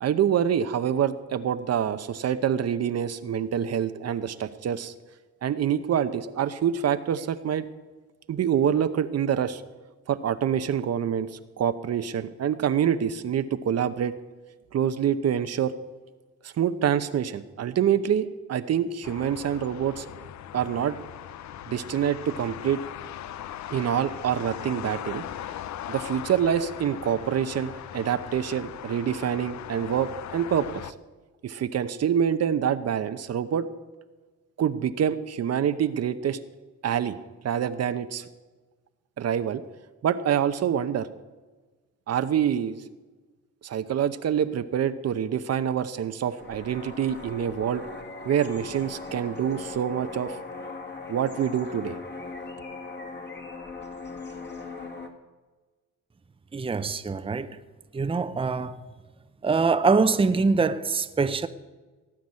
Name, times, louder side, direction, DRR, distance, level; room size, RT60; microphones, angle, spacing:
voice 1, 0.0-4.9 5.4-7.6 8.3-9.6 10.1-11.3 11.6-14.1 14.7-15.7 16.4-20.0 20.5-21.0 21.7-22.8 23.7-25.2 25.9-30.9 31.4-33.6 34.6-36.4 36.8-37.2 37.4-38.2 39.2-39.6 40.0-41.1 42.1-42.8 43.6-47.8 48.2-50.4 51.1-52.0, right 9 dB, 55° right, 0.9 m, -26 dB
sound 1, 19.0-30.9, left 11 dB, 65° left, 0.7 m, -39 dB
sound 2, 46.4-55.1, left 3 dB, 35° left, 2.1 m, -39 dB
voice 2, 56.5-57.6 57.9-58.7 59.4-61.5, right 4 dB, 20° right, 0.7 m, -24 dB
18.0 x 6.0 x 9.7 m
cardioid pair, 90°, 30 cm